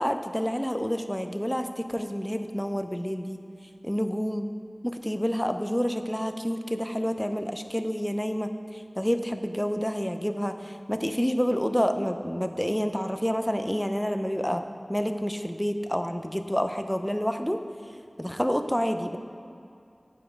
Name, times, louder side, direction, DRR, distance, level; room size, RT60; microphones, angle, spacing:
voice 1, 0.0-3.4 3.8-4.5 4.8-14.6 14.9-17.6 18.2-19.2, equal, 10° left, 7 dB, 0.5 m, -28 dB
8.5 x 6.0 x 5.1 m, 2.6 s
wide cardioid pair, 40°, 0 cm